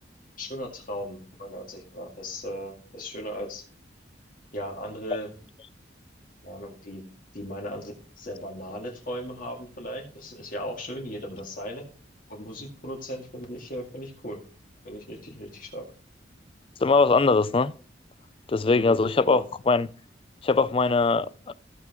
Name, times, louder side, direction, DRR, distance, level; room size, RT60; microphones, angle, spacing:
voice 1, 0.4-3.6 4.5-5.3 6.4-7.0 7.3-7.8 8.2-11.8 12.3-14.4 14.8-15.9 18.6-19.5, equal, 50° left, 2.1 m, -37 dB
voice 2, 16.8-17.7 18.5-19.4 19.7-19.9 20.4-21.3, left 4 dB, 30° left, 0.4 m, -21 dB
15.5 x 6.0 x 3.0 m
head